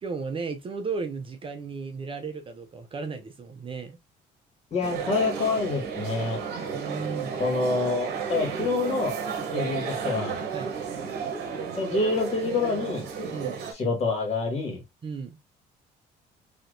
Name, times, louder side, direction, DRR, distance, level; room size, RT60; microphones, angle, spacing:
voice 1, 0.0-4.0 6.7-7.3 9.5-9.8 10.5-10.7 13.3-13.6 15.0-15.4, right 4 dB, 30° right, 0.6 m, -35 dB
voice 2, 4.7-6.4 7.4-9.1 9.5-10.4 11.8-13.1 13.7-14.8, left 3 dB, 40° left, 1.7 m, -27 dB
sound 1, 4.8-13.7, right 6 dB, 75° right, 1.0 m, -32 dB
3.3 x 2.9 x 2.6 m
cardioid pair, 110°, 17 cm